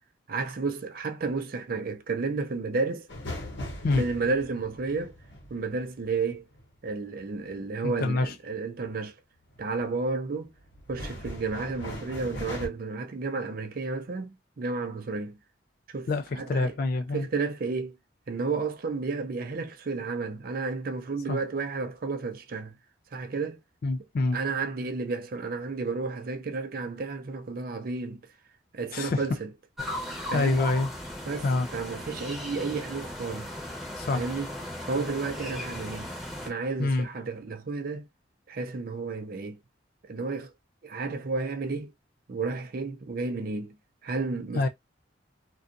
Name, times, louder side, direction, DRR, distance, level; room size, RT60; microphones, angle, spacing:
voice 1, 0.3-3.1 3.9-5.2 5.5-6.4 6.8-9.1 9.6-10.5 10.9-14.3 14.6-15.4 15.9-16.1 16.4-16.7 17.1-18.0 18.3-22.7 23.1-23.6 24.3-28.2 28.7-29.5 30.3-30.6 31.3-33.5 34.1-34.5 34.9-36.1 36.4-38.1 38.5-39.6 40.0-40.5 40.8-41.9 42.3-43.7 44.0-44.7, right 4 dB, 50° right, 0.4 m, -32 dB
sound 1, 3.1-6.9 9.5-9.9 10.4-12.7, left 1 dB, 65° left, 0.8 m, -39 dB
voice 2, 7.8-8.3 16.1-17.3 21.3-21.4 23.8-24.4 28.9-29.3 29.8-30.9 31.4-31.7 34.0-34.3 36.8-37.1 44.5-44.7, left 3 dB, 50° left, 0.3 m, -27 dB
sound 2, 29.8-36.5, left 1 dB, ahead, 0.8 m, -37 dB
2.5 x 2.3 x 2.5 m
head